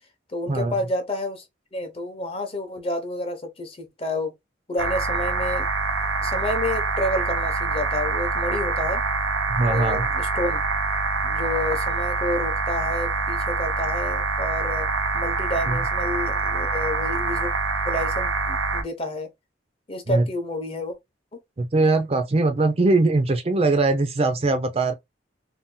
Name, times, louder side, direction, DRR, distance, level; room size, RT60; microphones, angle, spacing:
voice 1, 0.3-1.4 1.7-4.3 4.7-5.6 6.2-9.0 9.6-10.6 11.2-14.9 15.1-17.5 17.8-19.3 19.9-21.0 21.3-21.4, left 1 dB, 30° left, 0.7 m, -29 dB
sound 1, 4.8-18.8, right 3 dB, 85° right, 0.7 m, -25 dB
voice 2, 9.5-10.1 15.7-15.8 20.1-20.3 21.6-24.9, right 3 dB, 30° right, 0.4 m, -21 dB
2.7 x 2.2 x 3.7 m
head